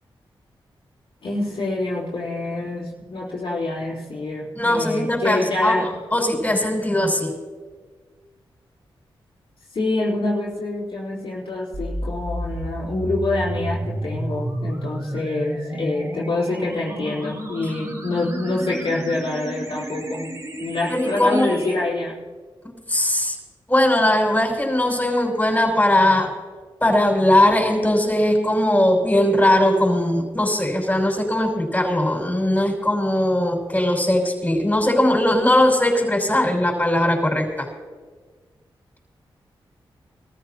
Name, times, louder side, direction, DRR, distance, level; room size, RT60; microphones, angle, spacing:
voice 1, 1.2-5.9 9.7-20.3 20.6-22.1, left 2 dB, 70° left, -7 dB, 3.5 m, -26 dB
voice 2, 4.5-7.3 20.9-21.5 22.6-23.4 23.7-26.3 26.8-37.7, left 1 dB, 15° left, 0 dB, 5.7 m, -19 dB
sound 1, 11.7-21.7, right 1 dB, 40° right, 3.4 m, -31 dB
23.5 x 14.5 x 2.9 m, 1.5 s
cardioid pair, 65°, 9 cm